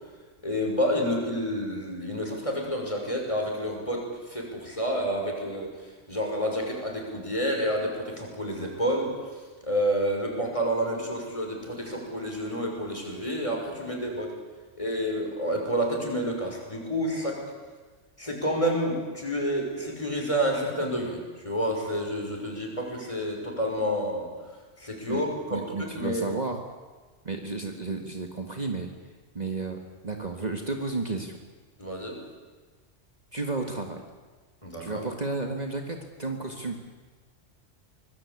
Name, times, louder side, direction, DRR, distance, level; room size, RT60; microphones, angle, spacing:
voice 1, 0.4-5.7 6.1-9.1 9.6-14.3 14.8-17.4 18.2-24.3 24.8-26.2 31.8-32.2 34.6-35.0, equal, 25° left, 0 dB, 5.8 m, -29 dB
voice 2, 25.5-26.6 27.2-28.9 29.3-31.4 33.3-34.0 34.8-36.8, right 3 dB, 35° right, 3 dB, 1.8 m, -32 dB
25.5 x 20.0 x 8.5 m, 1.3 s
omnidirectional pair, 1.3 m